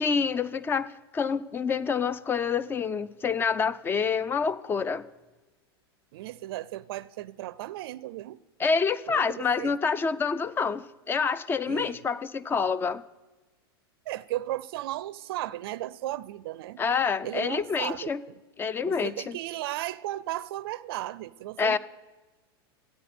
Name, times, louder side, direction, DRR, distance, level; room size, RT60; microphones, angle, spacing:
voice 1, 0.0-5.1 8.6-13.0 16.8-18.2 18.6-19.4 21.6-21.8, left 5 dB, 15° left, 0.4 m, -27 dB
voice 2, 6.1-8.4 9.1-9.8 11.7-12.1 14.1-16.8 17.2-18.4 18.8-21.8, right 15 dB, 65° right, 0.4 m, -35 dB
13.5 x 9.4 x 4.3 m
hypercardioid pair, 120°, 13 cm